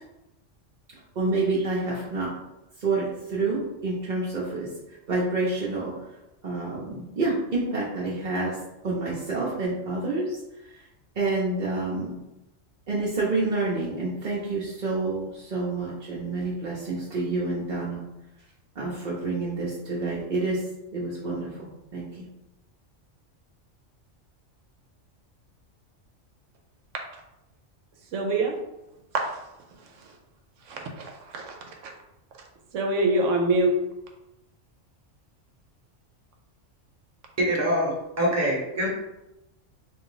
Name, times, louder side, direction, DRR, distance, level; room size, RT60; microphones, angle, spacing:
voice 1, 1.1-2.3 2.8-4.7 5.1-5.9 6.4-8.6 8.8-10.4 11.2-12.2 12.9-18.0 18.8-22.3, right 3 dB, 45° right, -6 dB, 0.7 m, -28 dB
voice 2, 28.1-28.5 29.1-29.3 30.7-31.4 32.7-33.7, right 2 dB, 75° right, 1 dB, 0.9 m, -24 dB
voice 3, 37.4-38.9, equal, 15° right, -4 dB, 0.9 m, -24 dB
3.6 x 2.5 x 3.8 m, 0.92 s
omnidirectional pair, 1.3 m